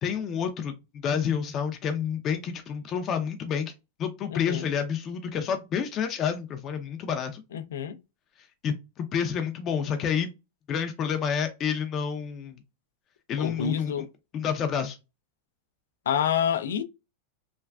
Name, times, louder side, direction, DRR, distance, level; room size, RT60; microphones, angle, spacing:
voice 1, 0.0-3.7 4.0-7.4 8.6-10.3 10.7-12.6 13.3-13.9 14.3-15.0, left 7 dB, 35° left, 0.5 m, -29 dB
voice 2, 4.3-4.7 7.5-8.0 13.4-14.1 16.1-16.8, left 8 dB, 85° left, 0.4 m, -28 dB
3.3 x 2.3 x 2.3 m
hypercardioid pair, 125°, 0 cm